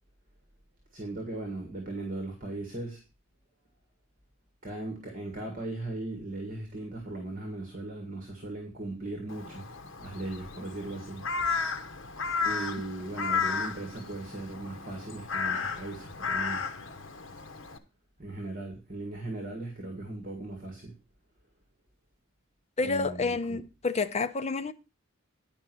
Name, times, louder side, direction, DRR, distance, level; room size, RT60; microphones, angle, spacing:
voice 1, 0.9-3.0 4.6-9.7 10.0-11.2 12.4-16.7 18.2-20.9 22.8-23.6, right 2 dB, 40° right, 2.0 m, -38 dB
Crow, 9.3-17.8, left 5 dB, 70° left, 1.0 m, -34 dB
voice 2, 22.8-24.7, left 4 dB, 30° left, 0.6 m, -29 dB
10.0 x 5.3 x 6.1 m
head